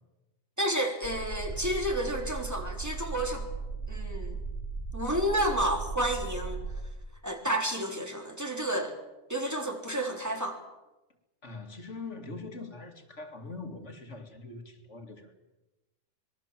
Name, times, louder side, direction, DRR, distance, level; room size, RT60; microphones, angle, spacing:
voice 1, 0.6-3.5 3.9-4.4 4.9-6.6 7.2-9.0 9.3-10.6, right 1 dB, 15° right, 2 dB, 3.6 m, -30 dB
sound 1, 1.0-6.8, right 4 dB, 85° right, 8.6 m, -37 dB
sound 2, 1.5-3.1, right 1 dB, 40° right, 5.8 m, -52 dB
voice 2, 11.4-15.3, left 3 dB, 80° left, 5 dB, 2.7 m, -42 dB
25.5 x 21.5 x 7.5 m, 1.1 s
omnidirectional pair, 1.2 m